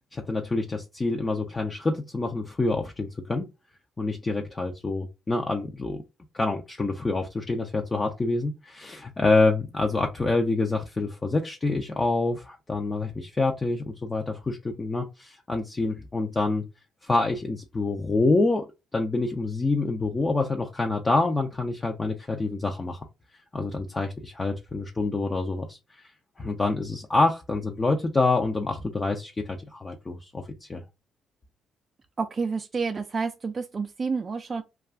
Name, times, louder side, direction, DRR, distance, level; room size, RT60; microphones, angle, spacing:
voice 1, 0.1-3.5 4.0-6.0 6.3-16.6 17.0-18.7 18.9-23.0 23.5-25.8 26.4-30.4 30.7-30.8, left 3 dB, 25° left, 0.5 m, -26 dB
voice 2, 32.2-34.6, right 4 dB, 35° right, 0.3 m, -29 dB
2.3 x 2.3 x 3.4 m
cardioid pair, 90°, 0 cm